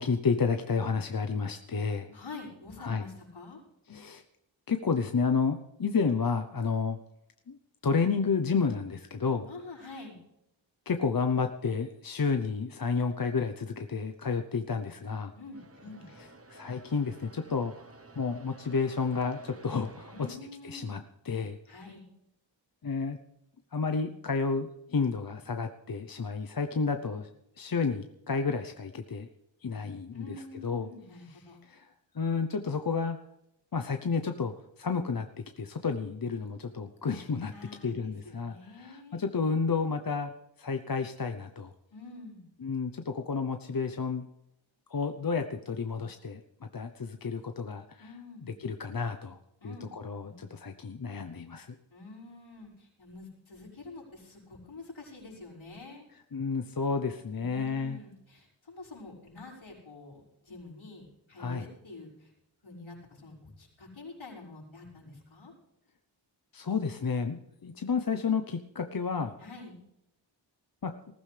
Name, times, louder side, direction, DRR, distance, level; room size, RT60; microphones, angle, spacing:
voice 1, 0.0-2.2 2.8-3.0 3.9-4.2 4.7-7.0 7.5-7.6 7.8-9.5 10.9-15.3 16.2-17.7 18.2-20.1 20.6-21.0 21.2-21.6 22.8-23.2 23.7-27.3 27.6-29.3 29.6-30.4 30.6-30.9 31.7-31.9 32.1-33.2 33.7-35.3 35.6-37.5 37.8-40.3 40.6-41.7 42.6-44.3 44.9-46.4 46.7-48.1 48.4-49.4 49.6-51.7 56.3-58.0 61.4-61.7 66.5-69.3 70.8-70.9, left 5 dB, 45° left, 6 dB, 0.8 m, -31 dB
voice 2, 2.1-3.6 9.5-10.2 15.3-16.1 20.1-21.0 21.7-22.1 30.1-31.6 37.5-39.2 41.9-42.5 48.0-48.5 49.6-49.9 50.2-50.5 51.9-56.1 57.3-62.3 62.6-65.5 69.4-69.8, left 3 dB, 75° left, -5 dB, 5.9 m, -47 dB
sound 1, 15.5-20.4, right 3 dB, 30° right, 1.0 m, -53 dB
20.0 x 14.5 x 3.4 m, 0.82 s
wide cardioid pair, 85°, 47 cm